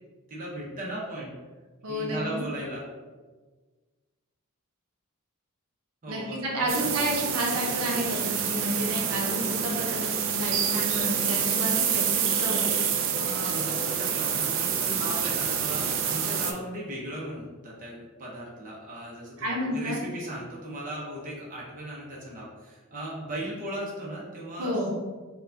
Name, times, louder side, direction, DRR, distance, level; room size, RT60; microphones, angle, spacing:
voice 1, 0.3-1.3 1.9-2.9 6.0-6.9 13.2-24.8, right 1 dB, 35° right, -4 dB, 0.7 m, -37 dB
voice 2, 1.8-2.4 6.1-12.8 19.4-20.0 24.6-24.9, equal, 80° right, -2 dB, 0.7 m, -31 dB
sound 1, 6.7-16.5, right 7 dB, 60° right, 0.4 m, -27 dB
4.5 x 2.2 x 2.6 m, 1.3 s
head